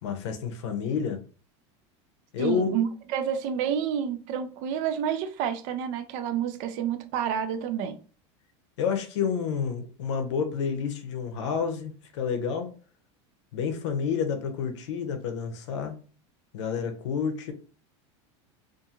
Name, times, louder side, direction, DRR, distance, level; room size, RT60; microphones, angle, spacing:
voice 1, 0.0-1.2 2.3-2.7 8.8-12.7 13.5-16.0 16.5-17.5, left 6 dB, 85° left, 0.7 m, -29 dB
voice 2, 2.4-8.0, right 8 dB, 55° right, 0.5 m, -29 dB
2.5 x 2.4 x 2.8 m
supercardioid pair, 135°, 15 cm